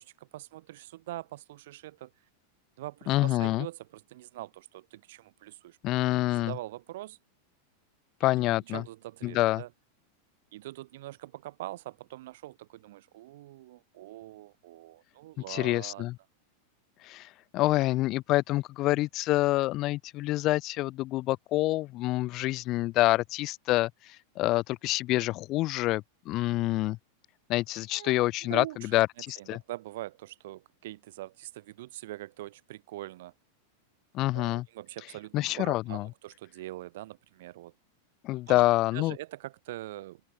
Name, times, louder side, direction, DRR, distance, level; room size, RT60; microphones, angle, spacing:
voice 1, 0.0-2.1 2.8-5.8 6.3-7.2 8.2-9.7 10.5-16.0 27.9-28.1 28.4-29.0 29.4-33.3 34.3-37.7 38.5-38.6 38.9-40.2, right 16 dB, 55° right, 1.0 m, -43 dB
voice 2, 3.1-3.7 5.8-6.5 8.2-8.8 9.2-9.6 15.5-16.1 17.0-27.0 27.5-29.6 34.1-34.6 35.3-36.1 38.2-39.2, left 18 dB, 35° left, 0.8 m, -27 dB
open air
figure-of-eight pair, 90°, 0 cm